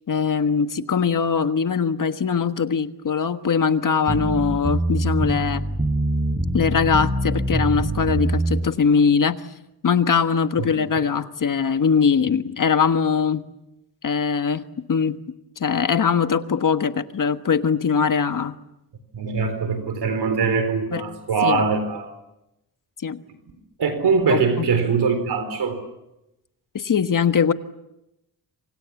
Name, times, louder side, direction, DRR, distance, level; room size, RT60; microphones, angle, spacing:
voice 1, 0.1-5.6 6.5-9.4 9.8-13.4 14.0-15.2 15.6-18.6 20.9-21.0 21.4-21.6 23.0-23.2 24.3-24.7 26.7-27.5, left 6 dB, 55° left, 9 dB, 1.5 m, -21 dB
sound 1, 4.1-8.6, right 1 dB, 20° right, 5.4 m, -24 dB
voice 2, 19.1-22.1 23.8-25.8, right 5 dB, 80° right, 8 dB, 4.1 m, -22 dB
28.0 x 25.5 x 7.2 m, 0.91 s
wide cardioid pair, 105°, 39 cm